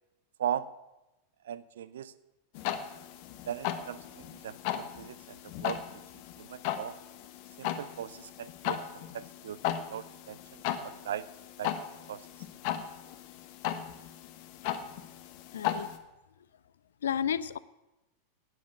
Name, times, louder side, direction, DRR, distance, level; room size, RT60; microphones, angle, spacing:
voice 1, 1.5-2.1 3.5-5.8 6.4-6.9 7.6-8.8 9.1-11.2 11.6-11.7 12.1-12.2, right 10 dB, 60° right, 16 dB, 0.6 m, -38 dB
sound 1, 2.5-16.0, left 10 dB, 45° left, 1.2 m, -37 dB
voice 2, 15.5-15.9 17.0-17.6, left 8 dB, 65° left, 18 dB, 0.5 m, -31 dB
12.0 x 9.5 x 8.3 m, 1.0 s
figure-of-eight pair, 90°, 0 cm